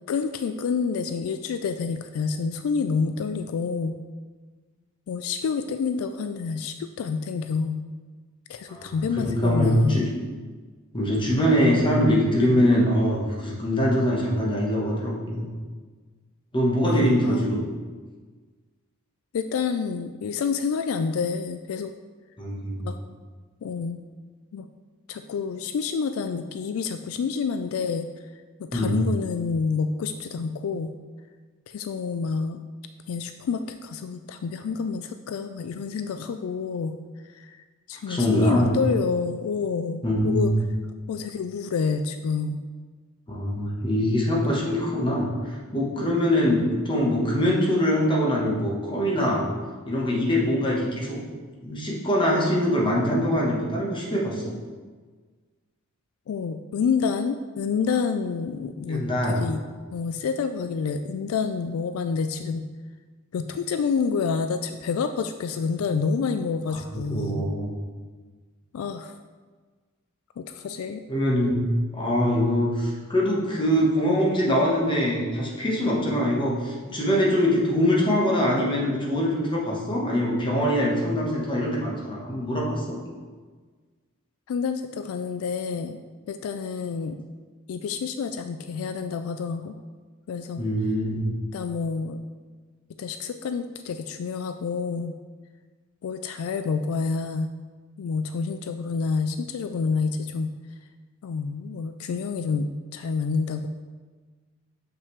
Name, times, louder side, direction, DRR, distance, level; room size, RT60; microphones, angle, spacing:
voice 1, 0.1-4.0 5.1-7.8 8.5-10.1 16.8-17.5 19.3-21.9 22.8-23.0 23.6-24.0 24.5-24.7 25.1-28.1 28.6-30.9 31.7-32.6 33.1-37.0 37.3-37.6 37.9-40.5 41.1-42.6 46.4-46.7 56.3-59.6 59.9-62.7 63.3-67.5 68.7-69.1 70.4-71.0 84.5-86.0 86.3-87.2 87.7-89.8 90.3-90.6 91.5-92.2 93.0-95.1 96.0-97.5 98.0-100.5 101.2-103.7, left 5 dB, 75° left, 8 dB, 0.3 m, -28 dB
voice 2, 8.7-10.1 10.9-15.5 16.5-17.6 22.4-22.9 28.7-29.0 38.1-38.7 40.0-40.6 43.3-49.5 49.9-51.2 51.6-54.5 58.9-59.4 66.9-67.7 71.1-71.6 71.9-83.0 90.6-91.3, equal, 25° left, -4 dB, 1.3 m, -23 dB
6.8 x 5.5 x 3.2 m, 1.4 s
head